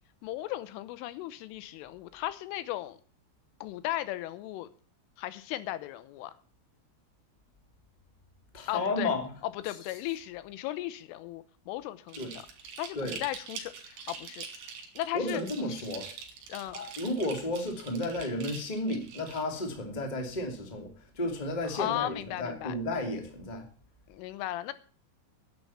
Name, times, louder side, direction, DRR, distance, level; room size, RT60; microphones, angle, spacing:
voice 1, 0.2-3.0 3.6-4.7 5.2-6.3 8.7-9.1 9.6-12.4 12.8-14.5 15.0-15.4 15.7-15.9 16.5-16.8 21.8-22.8 24.1-24.7, left 14 dB, 85° left, 15 dB, 3.4 m, -36 dB
voice 2, 8.5-9.3 12.2-12.3 12.9-13.2 15.1-16.1 16.7-23.6, left 2 dB, 15° left, 4 dB, 1.4 m, -33 dB
sound 1, 12.1-19.4, right 6 dB, 65° right, 4.6 m, -44 dB
11.0 x 9.7 x 7.3 m, 0.40 s
omnidirectional pair, 5.6 m